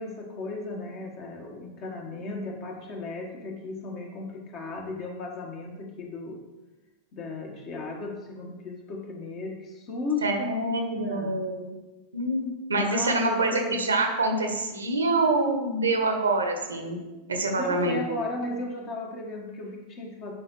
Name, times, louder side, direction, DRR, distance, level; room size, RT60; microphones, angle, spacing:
voice 1, 0.0-6.4 7.1-11.4 12.8-13.8 17.5-20.3, left 2 dB, 35° left, 1 dB, 1.5 m, -35 dB
voice 2, 10.2-11.8 12.1-17.0 17.3-18.0, right 2 dB, 75° right, 4 dB, 1.0 m, -26 dB
9.5 x 5.3 x 3.2 m, 1.1 s
figure-of-eight pair, 90°, 0 cm